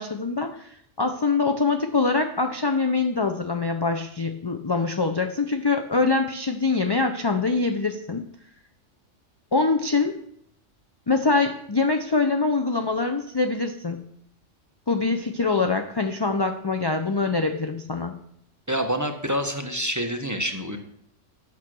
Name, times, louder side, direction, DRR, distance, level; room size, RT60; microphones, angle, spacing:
voice 1, 0.0-8.2 9.5-10.2 11.1-14.0 14.9-18.1, left 3 dB, 40° left, 5 dB, 0.3 m, -24 dB
voice 2, 18.7-20.8, equal, 15° right, 5 dB, 0.7 m, -27 dB
8.9 x 6.0 x 6.1 m, 0.70 s
omnidirectional pair, 1.3 m